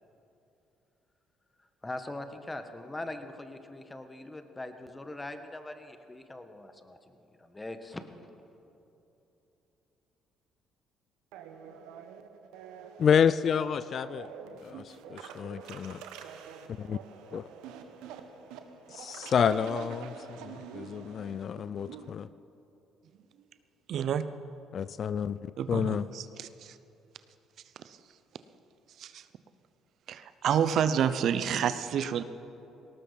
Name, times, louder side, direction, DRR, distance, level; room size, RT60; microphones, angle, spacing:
voice 1, 1.8-8.0, left 2 dB, 20° left, 8 dB, 1.5 m, -41 dB
sound 1, 11.3-22.1, right 7 dB, 80° right, 1.0 m, -46 dB
voice 2, 13.0-14.3 14.6-16.0 16.9-17.0 17.3-17.5 18.9-22.3 24.7-26.1, left 7 dB, 55° left, 16 dB, 0.3 m, -29 dB
voice 3, 23.9-24.2 25.6-26.8 27.8-28.0 29.0-29.2 30.1-32.2, right 8 dB, 65° right, 13 dB, 0.7 m, -29 dB
18.5 x 18.0 x 4.1 m, 3.0 s
hypercardioid pair, 60°, 0 cm